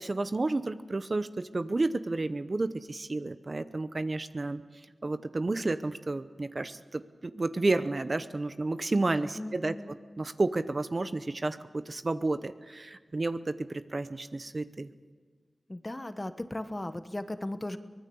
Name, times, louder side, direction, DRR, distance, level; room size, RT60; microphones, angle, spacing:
voice 1, 0.0-4.6 5.0-14.9, right 2 dB, 40° right, 11 dB, 0.8 m, -31 dB
voice 2, 9.3-10.0 15.7-17.8, left 1 dB, 20° left, 10 dB, 1.2 m, -37 dB
24.0 x 20.0 x 7.0 m, 1.5 s
wide cardioid pair, 75°, 0 cm